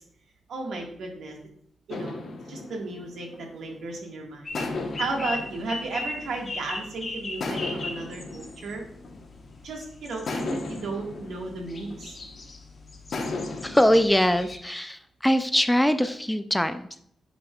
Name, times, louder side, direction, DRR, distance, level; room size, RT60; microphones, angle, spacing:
voice 1, 0.5-1.4 1.9-2.2 2.5-4.6 5.0-8.8 9.6-12.2, right 3 dB, 80° right, 1 dB, 1.7 m, -34 dB
sound 1, 1.9-3.9 4.5-6.8 7.4-9.7 10.3-12.4 13.1-14.0, left 3 dB, 55° left, 1.1 m, -36 dB
sound 2, 4.4-14.6, left 2 dB, 35° left, 1.2 m, -39 dB
voice 2, 13.6-16.9, equal, 5° left, 9 dB, 0.3 m, -22 dB
8.7 x 5.2 x 2.4 m, 0.68 s
wide cardioid pair, 140°, 0 cm